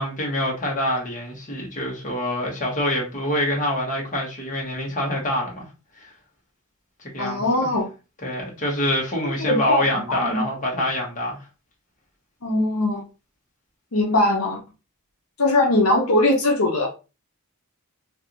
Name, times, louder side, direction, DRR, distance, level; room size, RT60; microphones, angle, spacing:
voice 1, 0.0-5.7 6.0-6.1 7.1-7.7 8.2-11.4, left 1 dB, 35° left, 1.1 m, -26 dB
voice 2, 7.2-7.9 9.4-10.4 12.4-13.1 13.9-14.6 15.4-16.9, left 2 dB, 70° left, 0.8 m, -21 dB
3.3 x 2.5 x 2.8 m
head